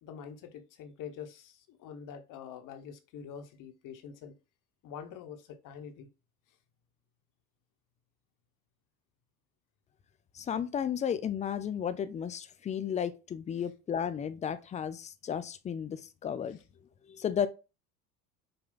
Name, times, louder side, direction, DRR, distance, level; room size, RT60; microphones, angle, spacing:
voice 1, 0.0-4.4 4.8-6.1 6.5-6.6 16.5-16.6, left 7 dB, 50° left, 0.9 m, -45 dB
voice 2, 10.3-16.6 17.1-17.5, left 8 dB, 20° left, 0.3 m, -33 dB
5.1 x 2.3 x 3.7 m
hypercardioid pair, 70°, 42 cm